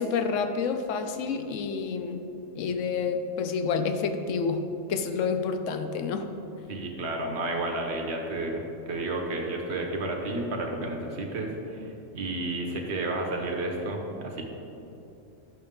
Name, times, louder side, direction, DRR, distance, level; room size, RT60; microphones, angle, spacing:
voice 1, 0.0-2.3 2.6-4.6 4.9-6.3, left 5 dB, 75° left, 7 dB, 1.0 m, -29 dB
voice 2, 6.7-14.4, right 2 dB, 60° right, 1 dB, 1.2 m, -31 dB
11.0 x 5.9 x 3.7 m, 2.8 s
omnidirectional pair, 1.3 m